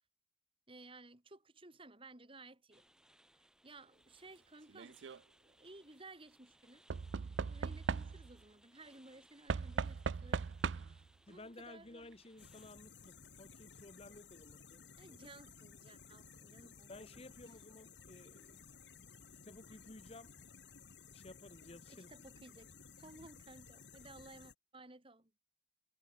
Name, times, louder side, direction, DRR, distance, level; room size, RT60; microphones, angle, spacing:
voice 1, 0.7-2.8 3.6-5.0 5.4-6.8 7.5-10.5 10.9-12.1 15.0-17.3 21.9-25.4, right 2 dB, 30° right, 2.7 m, -57 dB
sound 1, 2.7-12.7, right 1 dB, 5° right, 6.3 m, -68 dB
Knock / Wood, 4.7-5.2 6.9-8.4 9.5-11.1 12.1-12.2 12.4-12.5, right 5 dB, 80° right, 0.5 m, -39 dB
voice 2, 11.3-15.2 16.9-18.7 19.4-20.3 21.1-22.1, left 2 dB, 35° left, 1.4 m, -55 dB
sound 2, 12.4-24.5, left 5 dB, 70° left, 2.7 m, -57 dB
head